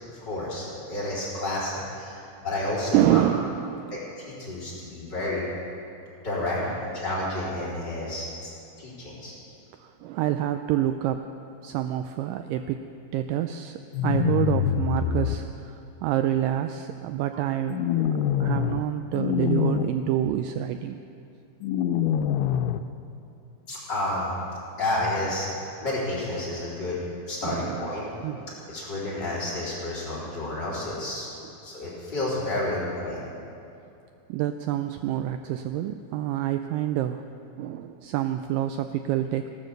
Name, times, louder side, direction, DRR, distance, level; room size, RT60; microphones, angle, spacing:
voice 1, 0.1-3.2 3.9-4.0 4.3-5.5 6.2-8.2 8.8-9.3 23.7-24.4 24.8-25.5 25.8-27.0 27.3-28.0 28.7-31.3 31.6-33.2, left 1 dB, 30° left, -8 dB, 4.2 m, -30 dB
voice 2, 2.9-4.0 6.6-6.8 9.8-11.3 11.6-12.9 13.1-21.0 27.4-28.8 34.3-37.2 37.6-39.5, right 12 dB, 90° right, 8 dB, 1.9 m, -27 dB
sound 1, 13.9-15.4 17.7-18.8 19.1-19.8 21.6-22.8, left 9 dB, 85° left, 2.6 m, -25 dB
16.5 x 12.5 x 6.7 m, 2.7 s
omnidirectional pair, 4.4 m